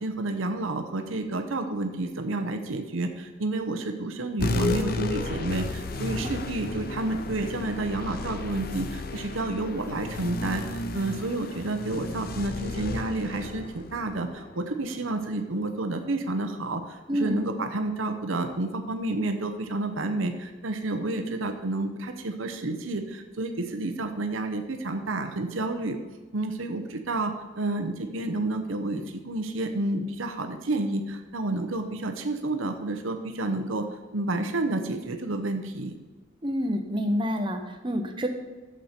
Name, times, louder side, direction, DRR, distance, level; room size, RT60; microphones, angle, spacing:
voice 1, 0.0-26.0 26.3-33.9 34.1-35.9, right 2 dB, 80° right, 6 dB, 0.9 m, -30 dB
sound 1, 4.4-15.3, left 2 dB, 45° left, 0.7 m, -33 dB
voice 2, 36.4-38.3, equal, 25° right, 5 dB, 0.9 m, -28 dB
11.5 x 7.4 x 4.4 m, 1.3 s
head